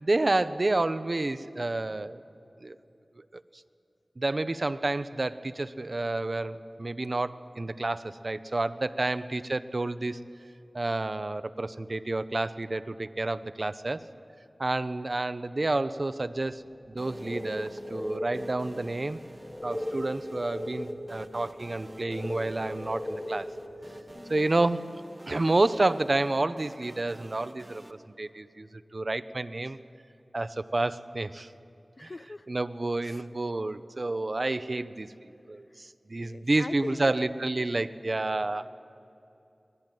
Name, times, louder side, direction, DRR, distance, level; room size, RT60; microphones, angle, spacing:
voice 1, 0.0-2.2 2.6-2.8 4.2-10.2 10.7-14.0 14.6-16.6 16.9-19.2 19.6-23.5 24.3-24.9 25.3-27.8 28.2-28.7 28.9-29.8 30.3-31.5 32.0-32.1 32.5-38.7, right 2 dB, 55° right, 12 dB, 0.9 m, -29 dB
sound 1, 16.8-24.2, left 1 dB, 30° left, 2.4 m, -38 dB
sound 2, 17.0-27.9, right 1 dB, 25° right, 1.6 m, -50 dB
voice 2, 24.1-24.5 32.0-32.5 33.0-33.3 36.2-37.0, left 2 dB, 55° left, 12 dB, 0.6 m, -42 dB
25.5 x 20.0 x 9.3 m, 2.6 s
wide cardioid pair, 45°, 0 cm